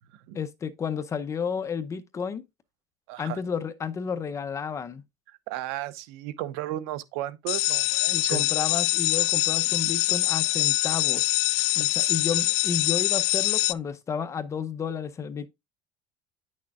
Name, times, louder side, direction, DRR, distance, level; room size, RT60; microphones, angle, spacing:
voice 1, 0.3-2.4 3.2-5.0 8.1-11.4 11.8-15.5, left 6 dB, 20° left, 0.6 m, -32 dB
voice 2, 3.1-3.4 5.5-8.4 9.8-9.9, right 14 dB, 75° right, 0.8 m, -34 dB
sound 1, 7.5-13.7, left 22 dB, 80° left, 0.4 m, -24 dB
9.6 x 6.4 x 2.4 m
cardioid pair, 160°, 14 cm